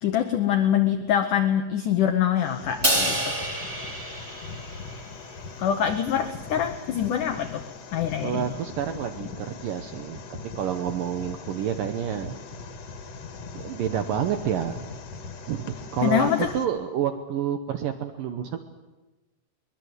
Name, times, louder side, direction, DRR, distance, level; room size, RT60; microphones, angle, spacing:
voice 1, 0.0-3.4 5.6-7.6 7.9-8.5 16.0-16.5, left 9 dB, 80° left, 8 dB, 1.8 m, -24 dB
sound 1, 2.4-16.7, left 4 dB, 50° left, 2.2 m, -40 dB
Crash cymbal, 2.8-5.2, right 1 dB, 15° right, 1.3 m, -27 dB
voice 2, 8.2-10.2 10.6-12.3 13.6-14.8 15.5-18.6, right 9 dB, 70° right, 7 dB, 2.2 m, -29 dB
23.0 x 21.0 x 8.1 m, 1.1 s
omnidirectional pair, 5.2 m